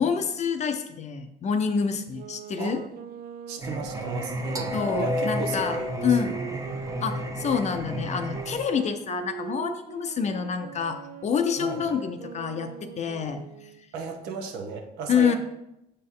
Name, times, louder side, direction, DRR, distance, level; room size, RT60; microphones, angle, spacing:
voice 1, 0.0-2.8 4.7-5.8 6.0-6.4 7.0-13.4 15.1-15.4, left 6 dB, 40° left, 7 dB, 0.5 m, -27 dB
sound 1, 2.1-7.7 8.3-13.9, right 9 dB, 60° right, 0.4 m, -41 dB
voice 2, 3.5-6.9 11.6-11.8 13.9-15.4, right 5 dB, 90° right, 3 dB, 1.0 m, -35 dB
Singing, 3.6-8.6, equal, 20° right, 0.7 m, -31 dB
6.7 x 4.3 x 3.7 m, 0.85 s
cardioid pair, 110°, 17 cm